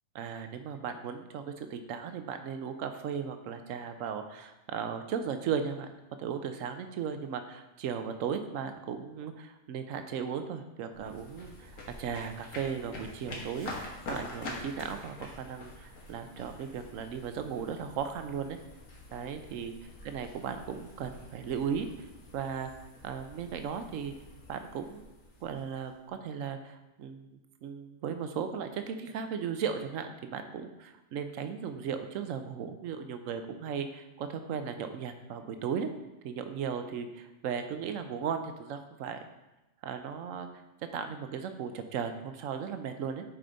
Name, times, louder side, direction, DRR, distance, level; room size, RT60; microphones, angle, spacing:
voice 1, 0.1-5.9 6.2-11.7 12.0-18.6 19.1-19.7 20.0-21.9 22.3-22.7 23.0-24.1 24.5-25.0 25.4-27.3 27.6-35.9 36.2-39.2 39.8-40.5 40.9-43.2, right 7 dB, 75° right, 8 dB, 1.0 m, -36 dB
sound 1, 10.9-26.1, left 2 dB, 75° left, 1.6 m, -46 dB
7.7 x 4.9 x 3.9 m, 0.99 s
omnidirectional pair, 1.4 m